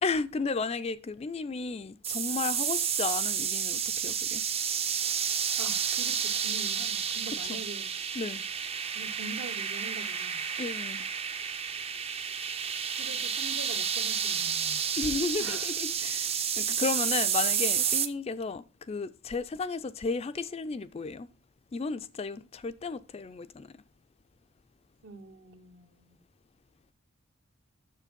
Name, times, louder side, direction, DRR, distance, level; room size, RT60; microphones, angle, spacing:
voice 1, 0.0-4.4 7.3-7.6 8.2-8.4 10.6-11.1 15.0-21.3 21.7-23.7, left 4 dB, 30° left, 0.3 m, -34 dB
sound 1, 2.0-18.1, right 7 dB, 30° right, 0.5 m, -30 dB
voice 2, 5.6-7.9 8.9-10.4 13.0-14.9 15.4-15.8 25.0-26.2, right 2 dB, 65° right, 1.0 m, -44 dB
7.4 x 7.0 x 5.1 m
head